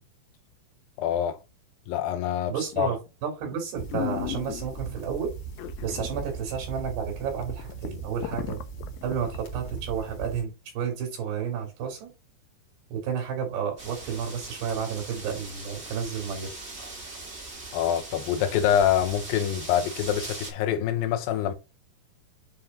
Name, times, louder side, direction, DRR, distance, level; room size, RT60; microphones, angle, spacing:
voice 1, 1.0-1.4 1.9-2.9 17.7-21.5, left 10 dB, 75° left, 2.4 m, -25 dB
voice 2, 2.5-5.3 5.8-8.6 9.0-12.1 12.9-16.5, right 7 dB, 75° right, 5.1 m, -31 dB
sound 1, 2.7-3.1 3.5-3.6 3.9-4.9 5.6-6.3 6.6-6.7 7.2-7.3 7.5-9.4 9.8-9.9, left 14 dB, 90° left, 2.0 m, -35 dB
sound 2, 3.7-10.4, right 5 dB, 40° left, 2.4 m, -39 dB
sound 3, 13.8-20.5, right 2 dB, 25° right, 1.5 m, -40 dB
9.7 x 3.5 x 4.2 m
omnidirectional pair, 4.8 m